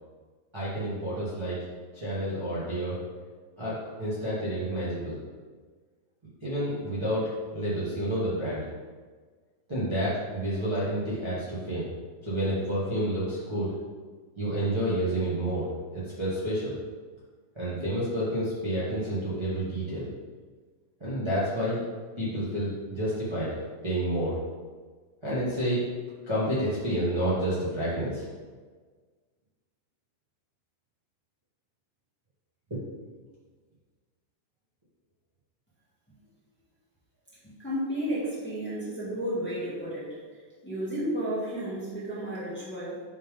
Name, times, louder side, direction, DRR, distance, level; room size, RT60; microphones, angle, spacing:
voice 1, 0.5-1.6 1.9-3.0 3.6-5.2 6.4-8.6 9.7-11.9 12.2-13.7 14.4-15.6 15.9-16.7 17.5-20.1 21.0-21.8 22.2-23.5 23.8-24.3 25.2-25.8 26.2-28.2 32.7-32.8, right 1 dB, 25° right, -11 dB, 0.6 m, -29 dB
voice 2, 37.4-40.1 40.6-43.0, right 1 dB, 5° left, -9 dB, 1.1 m, -32 dB
10.0 x 3.6 x 3.8 m, 1.5 s
omnidirectional pair, 3.7 m